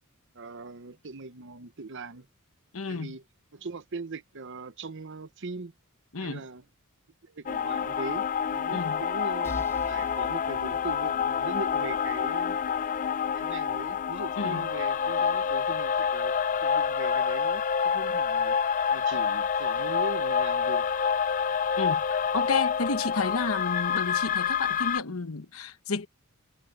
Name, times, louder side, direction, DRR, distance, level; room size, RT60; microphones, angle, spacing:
voice 1, 0.3-2.3 2.9-3.2 3.5-5.7 6.2-6.6 7.2-9.5 9.8-12.6 13.3-16.4 16.6-18.6 18.9-20.9, right 3 dB, 55° right, 1.0 m, -40 dB
voice 2, 2.7-3.2 6.1-6.4 8.7-9.0 14.4-14.7 21.8-26.1, left 4 dB, 70° left, 1.2 m, -31 dB
sound 1, 7.5-25.0, left 7 dB, 35° left, 0.4 m, -27 dB
sound 2, 9.4-13.1, equal, 10° left, 1.2 m, -46 dB
head